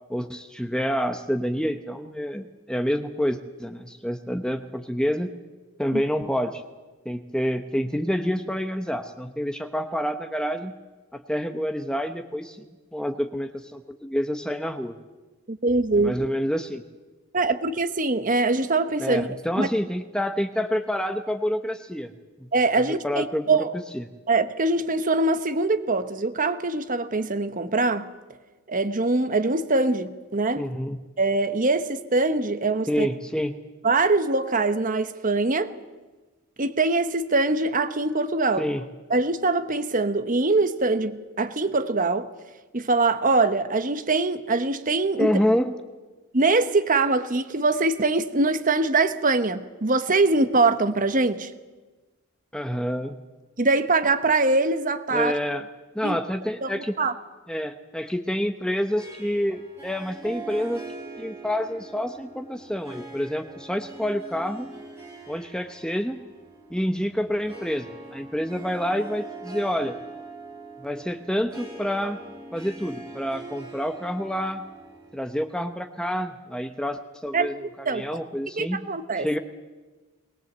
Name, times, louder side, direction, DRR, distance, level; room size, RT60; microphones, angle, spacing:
voice 1, 0.1-5.3 5.8-6.6 7.0-10.7 11.1-15.0 16.0-16.8 19.0-22.1 22.4-22.5 22.9-23.7 23.9-24.0 30.6-31.0 32.9-33.5 38.6-38.8 45.2-45.7 52.5-53.1 55.1-55.7 55.9-56.9 57.5-60.8 61.2-64.7 65.3-66.2 66.7-70.0 70.8-72.2 72.5-74.6 75.1-78.8 79.2-79.4, equal, 5° left, 0.8 m, -28 dB
voice 2, 15.5-16.3 17.3-19.3 19.6-19.7 22.5-23.7 24.3-28.1 28.7-30.6 31.2-33.1 33.8-35.7 36.6-38.7 39.1-42.3 42.7-45.3 46.3-51.5 53.6-55.4 56.0-56.2 56.6-57.1 77.3-78.2 78.6-79.3, right 3 dB, 35° right, 1.0 m, -23 dB
Harp, 59.0-75.7, right 2 dB, 10° right, 6.5 m, -42 dB
21.0 x 20.0 x 8.0 m
head